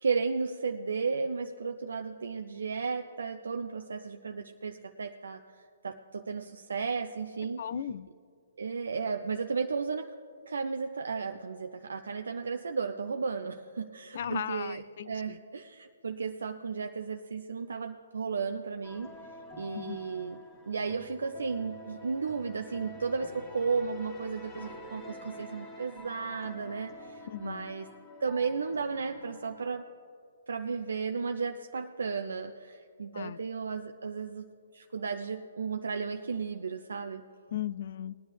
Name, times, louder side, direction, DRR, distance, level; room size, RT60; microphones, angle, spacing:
voice 1, 0.0-7.6 8.6-10.1 10.5-19.1 19.6-20.4 20.6-27.9 28.2-29.9 30.5-34.5 34.7-37.2, right 5 dB, 75° right, 7 dB, 0.5 m, -34 dB
voice 2, 7.6-8.1 14.1-15.4 19.7-20.0 27.3-27.7 33.1-33.4 37.5-38.2, left 9 dB, 55° left, 20 dB, 0.3 m, -36 dB
sound 1, 18.8-29.7, left 1 dB, 25° left, 1.5 m, -48 dB
19.0 x 9.9 x 3.4 m, 2.3 s
figure-of-eight pair, 130°, 0 cm